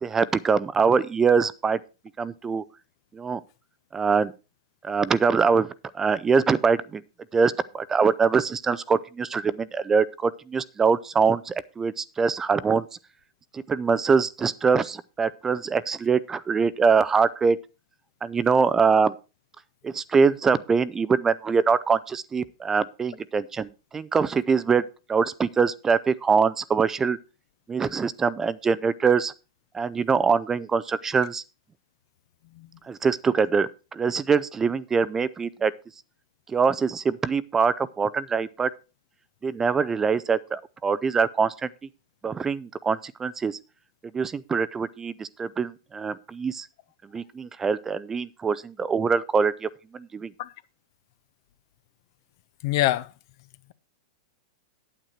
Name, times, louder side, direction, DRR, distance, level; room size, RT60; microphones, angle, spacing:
voice 1, 0.0-1.8 2.2-2.6 3.1-3.4 3.9-4.3 4.8-7.0 7.3-12.9 13.5-17.6 18.2-19.1 19.8-24.8 25.1-27.2 27.7-29.3 29.7-31.4 32.8-35.7 36.5-38.7 39.4-41.7 42.2-43.6 44.1-46.7 47.1-50.3, right 5 dB, 15° right, 0.4 m, -23 dB
voice 2, 52.6-53.1, left 15 dB, 55° left, 0.7 m, -24 dB
8.9 x 8.7 x 4.3 m
hypercardioid pair, 105°, 3 cm